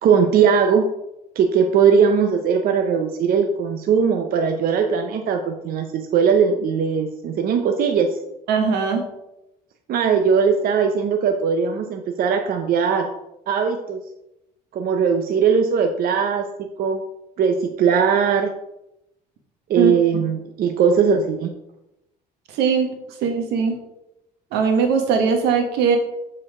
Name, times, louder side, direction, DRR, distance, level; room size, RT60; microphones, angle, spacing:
voice 1, 0.0-0.9 1.4-8.1 9.9-13.1 13.5-14.0 14.7-16.5 16.8-17.0 17.4-18.5 19.7-21.5, right 6 dB, 60° right, 5 dB, 0.7 m, -19 dB
voice 2, 8.5-9.0 19.8-19.9 22.5-22.9 23.2-23.8 24.5-26.0, right 6 dB, 90° right, 4 dB, 1.5 m, -20 dB
7.6 x 4.4 x 4.8 m, 0.87 s
cardioid pair, 110°, 17 cm